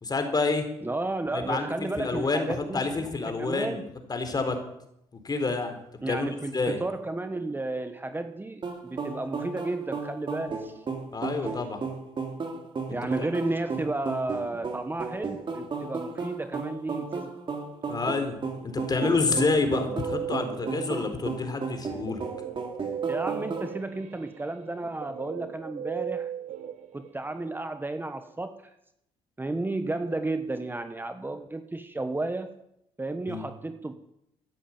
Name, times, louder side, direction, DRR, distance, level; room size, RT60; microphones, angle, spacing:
voice 1, 0.0-0.6 1.3-3.8 4.1-4.6 5.2-5.8 6.1-6.8 11.1-11.8 12.9-13.3 17.9-18.4 18.6-22.2 33.3-33.5, left 3 dB, 35° left, 7 dB, 4.1 m, -28 dB
voice 2, 0.8-3.1 3.4-3.8 6.0-10.8 12.9-17.3 23.1-26.3 26.9-28.5 29.4-32.5 33.0-34.0, right 2 dB, 15° right, 9 dB, 1.3 m, -32 dB
sound 1, 8.6-23.7, right 4 dB, 40° right, 3.5 m, -34 dB
Guitar, 18.8-21.3 22.1-27.5, right 9 dB, 70° right, 1.4 m, -37 dB
14.5 x 10.0 x 8.9 m, 0.79 s
supercardioid pair, 70°, 12 cm